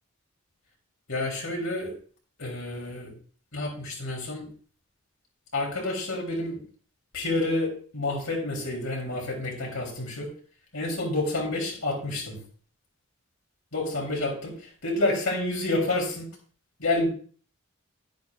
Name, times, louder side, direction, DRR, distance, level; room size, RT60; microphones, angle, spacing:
voice 1, 1.1-1.9 2.4-3.1 3.5-4.5 5.5-6.6 7.1-10.3 10.7-12.4 13.7-16.3 16.8-17.1, left 2 dB, 75° left, -1 dB, 3.7 m, -29 dB
10.5 x 10.0 x 2.6 m, 0.43 s
head